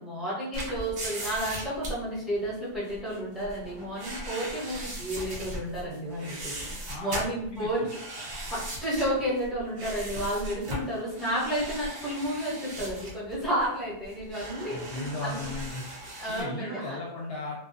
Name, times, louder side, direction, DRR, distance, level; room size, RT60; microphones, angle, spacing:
voice 1, 0.0-8.0 8.5-15.5 16.2-17.0, equal, ahead, -8 dB, 0.9 m, -32 dB
sound 1, 0.5-16.4, right 1 dB, 70° right, 1.0 m, -38 dB
voice 2, 6.9-7.9 14.7-15.8 16.3-17.6, left 2 dB, 65° left, -3 dB, 0.7 m, -36 dB
2.3 x 2.2 x 2.5 m, 0.72 s
omnidirectional pair, 1.2 m